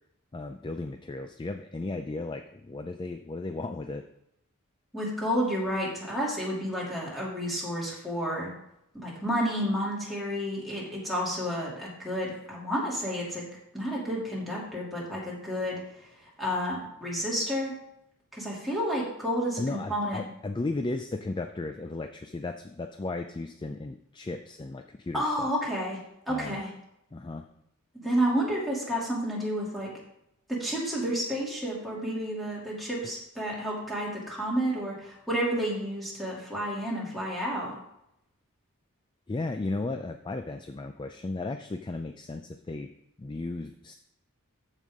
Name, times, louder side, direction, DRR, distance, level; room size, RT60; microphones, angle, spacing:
voice 1, 0.3-4.0 19.6-25.5 26.3-26.6 27.1-27.4 33.0-33.1 39.3-42.9 43.2-43.9, left 2 dB, 20° left, 7 dB, 0.4 m, -35 dB
voice 2, 4.9-8.5 8.9-13.4 13.7-15.8 16.4-17.7 18.3-20.2 25.1-26.0 26.3-26.7 27.9-29.9 30.5-37.7, equal, ahead, -6 dB, 2.7 m, -30 dB
14.0 x 5.5 x 3.6 m, 0.79 s
head